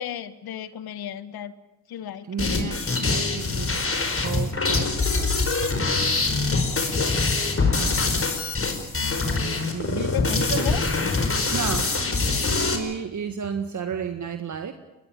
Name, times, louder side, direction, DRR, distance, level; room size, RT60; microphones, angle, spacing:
voice 1, 0.0-1.5 1.9-2.3 10.0-10.8, left 10 dB, 70° left, 14 dB, 1.6 m, -34 dB
voice 2, 2.2-6.3 6.5-7.0 7.6-8.2 9.2-10.8 11.5-12.1 12.6-14.7, right 7 dB, 50° right, 7 dB, 1.8 m, -33 dB
sound 1, 2.4-12.8, left 3 dB, 35° left, 4.9 m, -24 dB
21.5 x 20.0 x 9.2 m, 1.0 s
supercardioid pair, 55°, 38 cm